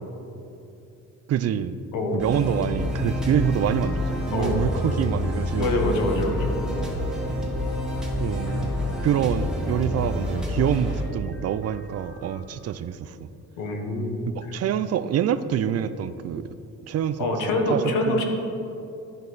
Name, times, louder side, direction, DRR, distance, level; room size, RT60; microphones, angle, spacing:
voice 1, 1.3-1.8 2.1-6.0 8.2-8.7 9.0-13.2 14.4-16.5 16.9-17.3 17.7-18.2, right 9 dB, 55° right, 14 dB, 0.4 m, -26 dB
voice 2, 1.9-2.3 4.3-4.6 5.6-6.6 13.6-14.2 17.2-18.2, left 2 dB, 90° left, 2 dB, 1.3 m, -25 dB
sound 1, 2.2-12.4, left 1 dB, ahead, 1.8 m, -28 dB
13.5 x 5.2 x 4.0 m, 2.8 s
cardioid pair, 90°, 30 cm